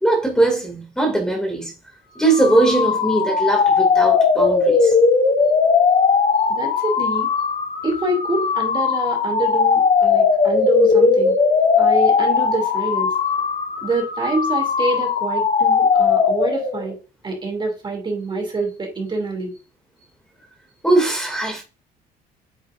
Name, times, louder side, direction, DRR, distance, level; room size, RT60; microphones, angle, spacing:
voice 1, 0.0-1.7 2.2-4.9 20.8-21.6, right 2 dB, 5° left, 2.5 m, -20 dB
sound 1, 2.2-16.9, left 5 dB, 40° left, 1.3 m, -18 dB
voice 2, 6.5-7.3 7.8-11.4 11.8-13.1 13.8-17.0 17.2-19.5, right 2 dB, 30° right, 2.8 m, -26 dB
8.9 x 6.3 x 2.6 m
cardioid pair, 110°, 17 cm